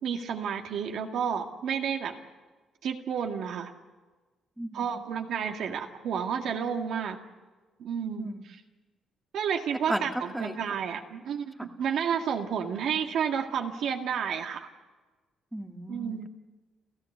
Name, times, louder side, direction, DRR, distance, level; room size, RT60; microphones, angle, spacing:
voice 1, 0.0-2.1 2.8-3.7 4.7-7.2 7.8-8.6 9.3-14.7 15.9-16.3, right 7 dB, 75° right, 3 dB, 2.0 m, -31 dB
voice 2, 10.3-10.8 11.6-11.7 15.5-16.3, right 1 dB, 5° right, 5 dB, 1.6 m, -35 dB
29.0 x 14.5 x 8.1 m, 1.3 s
cardioid pair, 90°, 0 cm